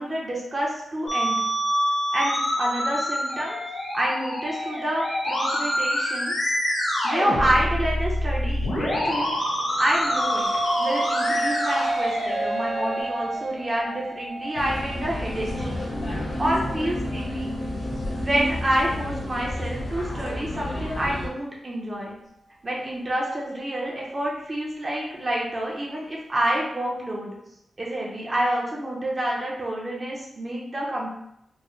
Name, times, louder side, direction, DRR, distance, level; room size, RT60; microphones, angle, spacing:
voice 1, 0.0-1.4 2.1-3.6 3.9-6.3 7.0-9.3 9.8-10.5 10.8-15.6 16.4-17.5 18.1-22.1 22.6-27.4 27.8-31.1, right 1 dB, 25° right, -4 dB, 0.7 m, -28 dB
Musical instrument, 1.1-13.0, equal, 80° left, 1.5 m, -26 dB
sound 1, 9.6-18.7, right 2 dB, 75° right, 0.5 m, -31 dB
sound 2, 14.5-21.3, left 1 dB, 55° left, 0.8 m, -30 dB
4.4 x 2.0 x 3.1 m, 0.79 s
wide cardioid pair, 160°, 0 cm